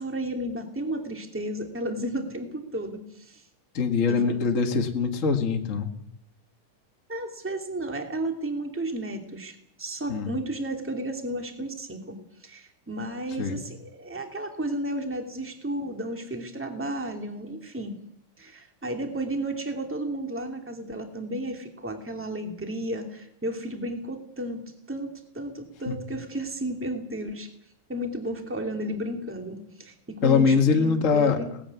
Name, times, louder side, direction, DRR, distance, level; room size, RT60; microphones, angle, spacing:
voice 1, 0.0-3.5 4.1-4.4 7.1-18.0 18.4-27.5 27.9-31.5, right 1 dB, 5° right, 4 dB, 2.0 m, -33 dB
voice 2, 3.7-5.9 10.1-10.3 13.4-13.6 25.9-26.0 30.2-31.4, left 5 dB, 30° left, 4 dB, 1.5 m, -23 dB
19.0 x 15.0 x 9.6 m, 0.74 s
omnidirectional pair, 3.9 m